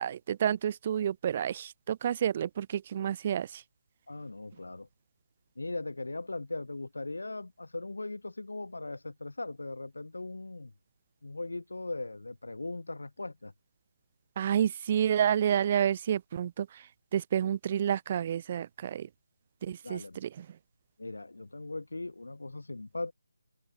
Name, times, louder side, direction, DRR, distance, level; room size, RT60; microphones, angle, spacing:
voice 1, 0.0-3.6 14.4-16.7 17.1-19.1 19.6-20.5, right 9 dB, 35° right, 0.7 m, -29 dB
voice 2, 4.1-4.9 5.6-10.7 11.2-13.5 19.8-20.2 21.0-23.1, left 2 dB, 75° left, 3.9 m, -39 dB
open air
figure-of-eight pair, 155°, 0 cm